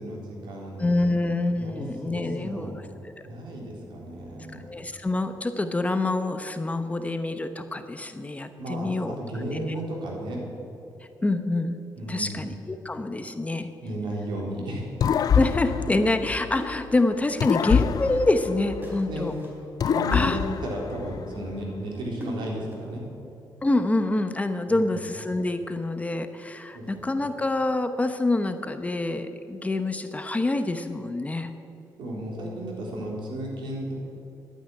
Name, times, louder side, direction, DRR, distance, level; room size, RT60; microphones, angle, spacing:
voice 1, 0.0-0.9 1.5-2.8 3.2-4.7 8.6-10.5 12.0-12.4 13.8-14.9 19.1-19.3 19.8-23.1 24.7-25.0 26.7-27.0 32.0-33.9, right 1 dB, 85° right, -1 dB, 3.8 m, -34 dB
voice 2, 0.8-2.9 4.6-9.2 9.5-9.7 11.2-11.8 12.1-13.7 15.3-19.4 20.1-20.4 23.6-31.5, left 2 dB, 15° left, 8 dB, 0.8 m, -26 dB
sound 1, 15.0-16.9 17.4-19.3 19.8-21.5, left 7 dB, 55° left, 0.4 m, -26 dB
sound 2, 16.6-17.2 18.8-19.6 21.9-23.0, equal, 25° right, 4.1 m, -41 dB
11.5 x 9.2 x 10.0 m, 2.8 s
cardioid pair, 120°, 8 cm